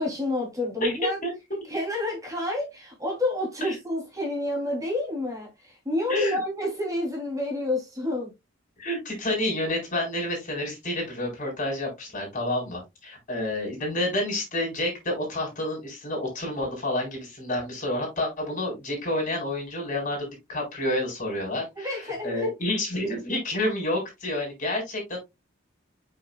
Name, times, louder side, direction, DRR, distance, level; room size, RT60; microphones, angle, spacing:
voice 1, 0.0-1.2 1.7-8.3 21.8-22.5, left 1 dB, 15° right, 3.1 m, -29 dB
voice 2, 8.8-25.2, left 1 dB, 45° left, 4.4 m, -29 dB
8.7 x 5.8 x 2.3 m
head